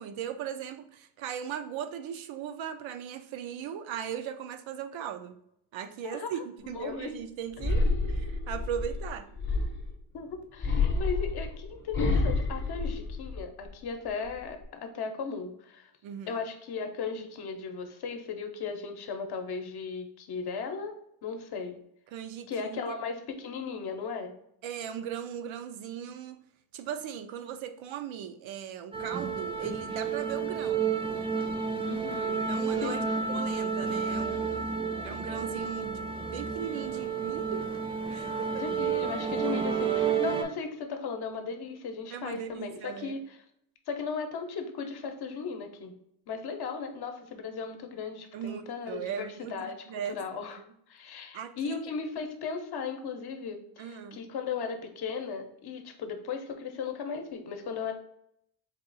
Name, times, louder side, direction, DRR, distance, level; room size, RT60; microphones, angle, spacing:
voice 1, 0.0-5.4 5.7-9.3 16.0-16.4 22.1-22.9 24.6-26.4 26.7-31.0 32.5-33.0 33.3-37.7 38.1-38.6 42.1-43.2 48.3-50.2 51.3-51.8 53.8-54.2, right 9 dB, 80° right, 9 dB, 0.6 m, -38 dB
voice 2, 6.6-7.1 10.1-15.9 16.3-20.9 21.2-21.8 22.5-24.3 31.9-32.5 32.8-33.4 38.5-43.2 43.9-46.0 46.3-49.8 50.1-50.6 50.9-57.9, left 5 dB, 55° left, 6 dB, 0.8 m, -36 dB
sound 1, 7.6-10.0 10.6-13.7 14.1-14.6, left 3 dB, 25° left, 0.7 m, -29 dB
sound 2, 28.9-40.4, right 6 dB, 15° right, 0.4 m, -31 dB
4.1 x 2.4 x 3.8 m, 0.73 s
cardioid pair, 150°, 46 cm